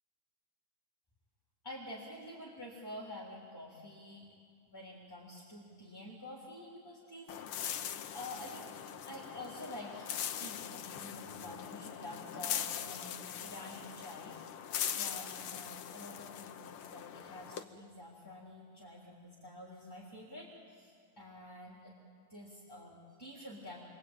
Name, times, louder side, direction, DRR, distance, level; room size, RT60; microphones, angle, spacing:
voice 1, 1.6-4.3 4.6-7.8 8.1-8.7 9.0-10.1 10.4-14.4 14.9-22.0 22.3-23.8, left 1 dB, 5° left, -3 dB, 3.1 m, -48 dB
sound 1, 7.3-17.6, left 9 dB, 80° left, 1.2 m, -41 dB
28.5 x 23.5 x 8.9 m, 2.3 s
omnidirectional pair, 3.7 m